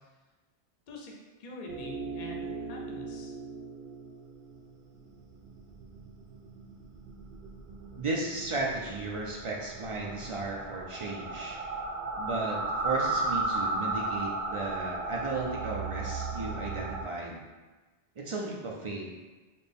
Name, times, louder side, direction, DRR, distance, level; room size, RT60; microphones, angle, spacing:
voice 1, 1.4-3.4, left 2 dB, 55° left, -1 dB, 0.7 m, -45 dB
sound 1, 1.7-17.0, right 2 dB, 85° right, 0.8 m, -36 dB
voice 2, 8.0-11.6 12.2-17.4 18.2-19.1, right 3 dB, 45° right, -2 dB, 0.4 m, -35 dB
4.1 x 2.2 x 3.4 m, 1.2 s
omnidirectional pair, 1.0 m